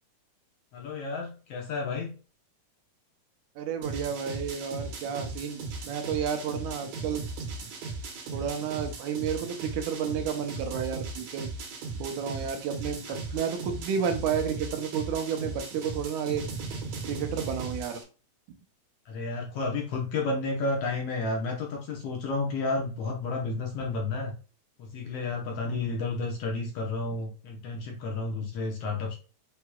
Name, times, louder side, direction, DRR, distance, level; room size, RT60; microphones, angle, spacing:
voice 1, 0.7-2.1 13.1-13.2 19.0-24.3 24.8-29.2, left 3 dB, 65° left, 0 dB, 1.7 m, -31 dB
voice 2, 3.6-5.6 5.9-7.2 8.3-11.5 12.0-16.4 17.1-18.0 25.7-25.8, right 7 dB, 85° right, 5 dB, 2.3 m, -31 dB
sound 1, 3.8-18.0, right 3 dB, 70° right, 2.0 m, -37 dB
6.6 x 2.9 x 2.2 m, 0.36 s
omnidirectional pair, 3.4 m